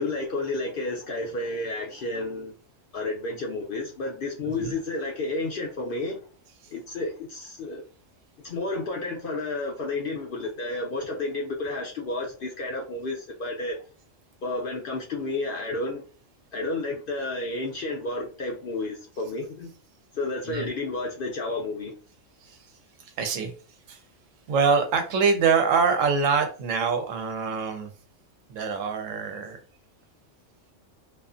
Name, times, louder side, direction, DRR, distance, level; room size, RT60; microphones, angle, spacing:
voice 1, 0.0-2.5 2.9-6.3 6.7-7.8 8.4-13.8 14.4-16.0 16.5-19.7 20.1-22.0, left 2 dB, 60° left, 0.6 m, -31 dB
voice 2, 23.2-23.5 23.9-24.0 24.5-27.9 28.5-29.6, right 5 dB, 80° right, 1.0 m, -24 dB
2.4 x 2.4 x 2.4 m
omnidirectional pair, 1.3 m